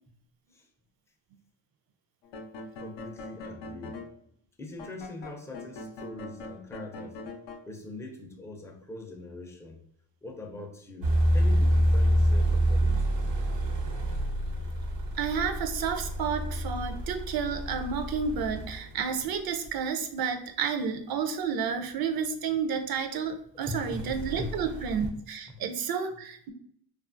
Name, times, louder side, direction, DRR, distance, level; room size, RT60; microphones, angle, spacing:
sound 1, 2.2-4.1 4.8-7.6, left 2 dB, 85° left, 0.5 m, -42 dB
voice 1, 2.8-4.0 4.6-7.2 7.7-9.8 10.2-13.3 23.7-24.5 25.5-25.6, left 2 dB, 5° left, 2 dB, 0.4 m, -42 dB
sound 2, 11.0-18.8 19.6-19.7 23.6-25.1, right 1 dB, 85° right, 0.8 m, -27 dB
voice 2, 15.2-26.5, right 6 dB, 60° right, 7 dB, 0.5 m, -31 dB
2.6 x 2.4 x 2.5 m, 0.66 s
cardioid pair, 110°, 42 cm